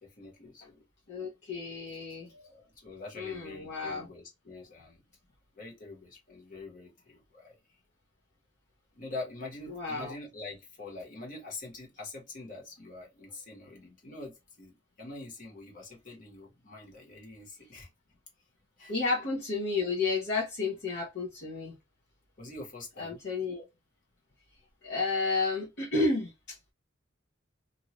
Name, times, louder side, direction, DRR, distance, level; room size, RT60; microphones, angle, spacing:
voice 1, 0.0-0.8 2.4-5.0 5.5-7.6 8.9-17.9 18.8-18.9 22.4-23.2, left 2 dB, 45° left, 1.4 m, -45 dB
voice 2, 1.1-2.3 3.2-4.1 9.7-10.1 18.9-21.7 23.0-23.6 24.8-26.6, left 3 dB, 60° left, 0.9 m, -31 dB
2.7 x 2.5 x 3.0 m
head